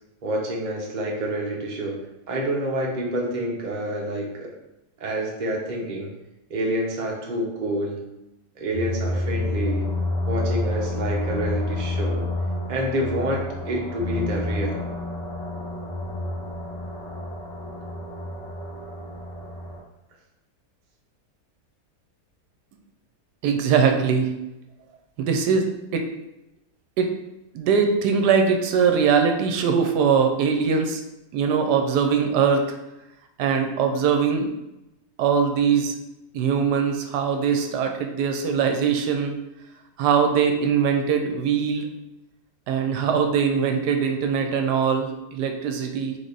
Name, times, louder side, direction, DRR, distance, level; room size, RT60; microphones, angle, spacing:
voice 1, 0.2-2.0 2.3-4.5 5.0-6.1 6.5-8.0 8.6-9.9 10.3-12.3 12.7-14.8, right 1 dB, 35° right, -2 dB, 0.8 m, -28 dB
sound 1, 8.7-19.8, left 2 dB, 25° left, 1.8 m, -29 dB
voice 2, 23.4-24.3 25.2-26.1 27.0-27.1 27.5-31.0 31.3-32.6 33.4-34.5 35.2-35.9 36.3-39.4 40.0-41.9 42.7-46.2, right 6 dB, 80° right, 5 dB, 1.2 m, -21 dB
3.8 x 3.4 x 3.9 m, 0.92 s
omnidirectional pair, 1.8 m